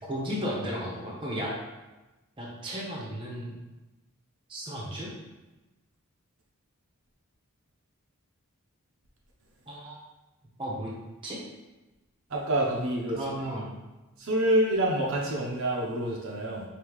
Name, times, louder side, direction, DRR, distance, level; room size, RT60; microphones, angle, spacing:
voice 1, 0.1-1.5 2.4-3.5 4.5-5.1 9.7-10.0 10.6-10.9 11.2-11.4 13.1-13.7, equal, 25° right, -4 dB, 0.8 m, -34 dB
voice 2, 12.3-13.2 14.2-16.6, right 1 dB, 60° right, -2 dB, 0.7 m, -27 dB
5.2 x 2.8 x 3.1 m, 1.1 s
head